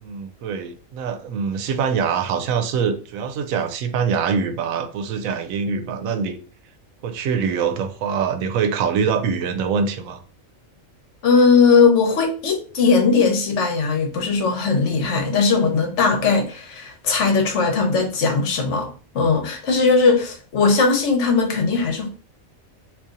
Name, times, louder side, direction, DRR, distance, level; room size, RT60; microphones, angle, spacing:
voice 1, 0.0-6.4 7.0-10.2, right 6 dB, 90° right, 1.0 m, -24 dB
voice 2, 11.2-22.1, left 4 dB, 65° left, 1.1 m, -19 dB
2.7 x 2.7 x 3.7 m
omnidirectional pair, 1.4 m